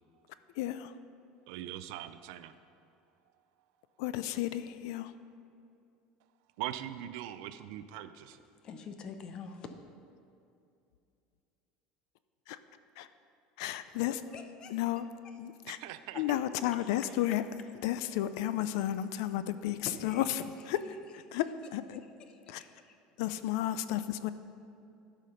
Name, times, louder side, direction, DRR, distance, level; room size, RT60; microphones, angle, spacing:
voice 1, 0.6-0.9 4.0-5.1 12.5-12.6 13.0-13.1 13.6-14.1 14.7-15.0 15.4-15.8 16.2-17.4 17.8-20.2 20.7-21.5 21.7-22.0 22.5-22.6 23.2-24.3, left 13 dB, 75° left, 13 dB, 0.4 m, -32 dB
voice 2, 1.5-2.5 6.6-8.4 15.7-16.2, right 12 dB, 70° right, 12 dB, 0.4 m, -41 dB
voice 3, 8.6-9.7 14.0-14.8 15.2-15.4 16.1-16.4 16.7-17.2 19.8-20.8 21.3-21.4 22.2-23.0, left 5 dB, 30° left, 7 dB, 0.7 m, -47 dB
12.5 x 5.0 x 5.6 m, 2.6 s
cardioid pair, 170°, 3 cm